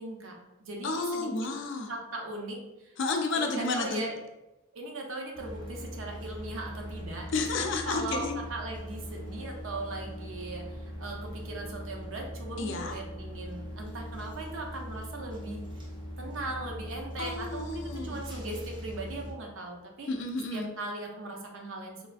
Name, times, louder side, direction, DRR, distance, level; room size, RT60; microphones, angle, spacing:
voice 1, 0.0-1.5 1.9-3.0 3.3-4.2 4.7-15.7 16.2-20.1 20.5-22.0, right 2 dB, 70° right, 1 dB, 0.5 m, -39 dB
voice 2, 0.8-1.9 3.0-4.0 7.3-8.3 12.6-12.9 17.2-18.2 20.1-20.7, left 3 dB, 60° left, 4 dB, 0.4 m, -31 dB
sound 1, 5.3-19.3, equal, 20° right, 0.4 m, -41 dB
3.2 x 2.3 x 2.4 m, 0.97 s
head